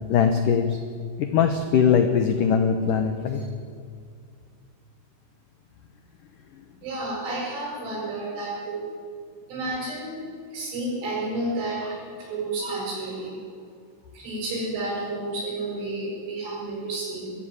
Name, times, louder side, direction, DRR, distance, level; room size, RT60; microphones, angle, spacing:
voice 1, 0.1-0.8 1.2-3.5, left 7 dB, 80° left, 7 dB, 1.8 m, -21 dB
voice 2, 6.8-8.8 9.5-10.2 10.5-13.4 14.1-17.4, right 2 dB, 80° right, -3 dB, 9.7 m, -31 dB
21.5 x 15.5 x 9.1 m, 2.2 s
omnidirectional pair, 5.4 m